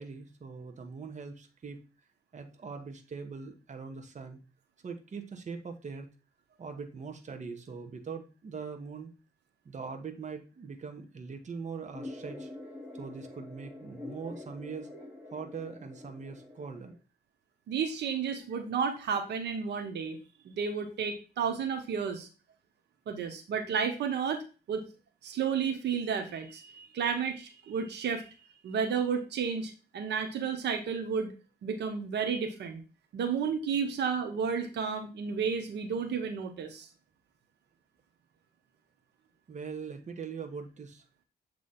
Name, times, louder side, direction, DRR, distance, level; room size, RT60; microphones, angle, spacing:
voice 1, 0.0-1.8 2.3-4.4 4.8-6.1 6.6-9.1 9.6-12.5 12.9-14.9 15.3-17.0 39.5-41.0, right 5 dB, 45° right, 5 dB, 1.1 m, -42 dB
sound 1, 11.9-16.9, left 2 dB, 10° right, 2.3 m, -45 dB
voice 2, 17.7-22.3 23.1-24.4 24.7-24.8 25.2-28.3 28.6-31.3 31.6-32.8 33.1-36.9, right 6 dB, 80° right, 5 dB, 0.9 m, -32 dB
7.5 x 3.1 x 4.0 m, 0.33 s
cardioid pair, 90°, 18 cm